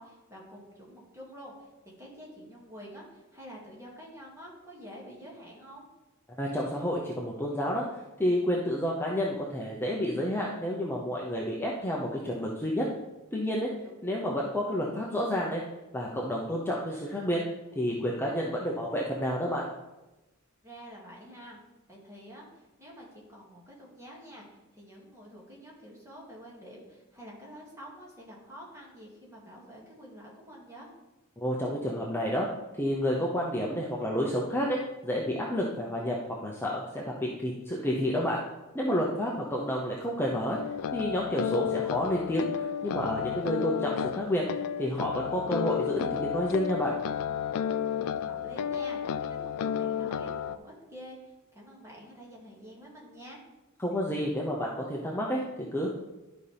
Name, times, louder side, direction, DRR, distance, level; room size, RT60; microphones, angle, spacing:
voice 1, 0.0-1.7 2.0-5.9 13.8-13.9 20.6-21.6 21.9-30.9 39.2-39.5 47.8-53.4, equal, 15° right, -4 dB, 2.2 m, -48 dB
voice 2, 6.4-7.8 8.2-12.8 13.3-13.7 14.0-15.6 15.9-17.4 17.7-19.7 31.4-32.5 32.8-34.8 35.0-36.2 36.4-38.4 38.7-40.6 40.9-44.4 44.8-46.9 53.8-55.9, equal, 10° left, -3 dB, 0.8 m, -30 dB
Floyd Filtertron harmonic, 40.6-50.6, left 8 dB, 80° left, 0.4 m, -32 dB
12.0 x 5.5 x 3.4 m, 1.0 s
head